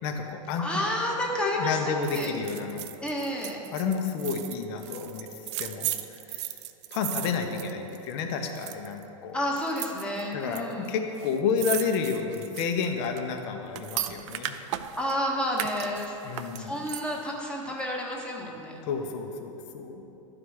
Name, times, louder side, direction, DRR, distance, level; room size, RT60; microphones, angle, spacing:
voice 1, 0.0-0.9 1.4-2.9 3.7-5.3 5.6-6.5 6.9-9.4 10.3-14.7 16.2-16.9 18.8-20.0, left 5 dB, 50° left, 4 dB, 1.0 m, -31 dB
voice 2, 0.6-2.4 3.0-3.6 9.3-10.9 15.0-18.8, equal, 5° left, -2 dB, 1.1 m, -30 dB
sound 1, 2.0-8.2 8.5-9.0 9.6-10.6 10.9-11.0 11.2-15.1 15.5-17.3 17.7-17.8, right 12 dB, 55° right, 0.5 m, -36 dB
11.5 x 4.9 x 4.8 m, 2.8 s
hypercardioid pair, 130°, 18 cm